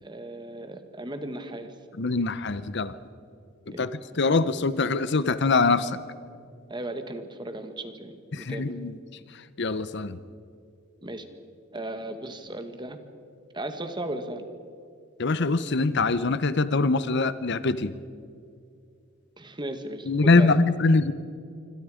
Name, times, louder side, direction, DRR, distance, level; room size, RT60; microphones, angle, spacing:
voice 1, 0.0-1.7 3.7-3.9 6.7-8.7 11.0-11.3 11.7-13.0 13.5-14.4 19.4-20.6, right 1 dB, 20° right, 7 dB, 1.7 m, -36 dB
voice 2, 2.0-3.0 3.7-3.9 4.2-6.0 8.3-8.9 9.6-10.2 15.2-18.0 20.1-21.1, left 3 dB, 55° left, 14 dB, 0.8 m, -23 dB
27.0 x 25.0 x 5.1 m, 2.4 s
head